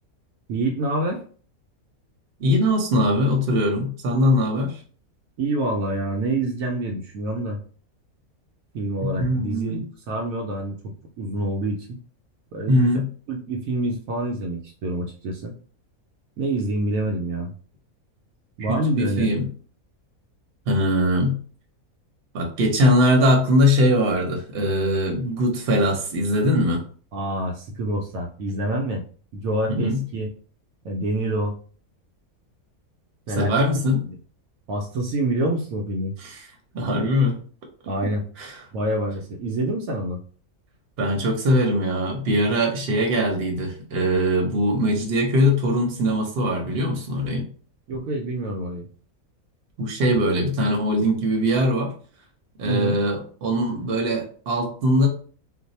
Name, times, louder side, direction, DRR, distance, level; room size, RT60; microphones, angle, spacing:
voice 1, 0.5-1.2 5.4-7.6 8.7-9.8 10.1-10.8 11.2-12.0 12.5-13.0 13.3-15.5 16.4-17.5 18.6-19.3 27.1-29.0 29.3-30.3 30.8-31.6 33.3-33.7 34.0-34.2 34.7-36.1 37.9-38.2 38.7-40.2 47.9-48.9 52.6-53.0, right 1 dB, 75° right, 1 dB, 1.0 m, -26 dB
voice 2, 2.4-4.8 9.0-9.8 12.7-13.0 18.6-19.5 20.7-21.4 22.3-26.8 29.7-30.0 33.4-34.0 36.2-36.4 36.7-37.4 38.4-38.5 41.0-47.5 49.8-51.9 52.6-55.1, equal, 50° right, 1 dB, 0.9 m, -21 dB
2.6 x 2.2 x 4.0 m, 0.43 s
omnidirectional pair, 1.5 m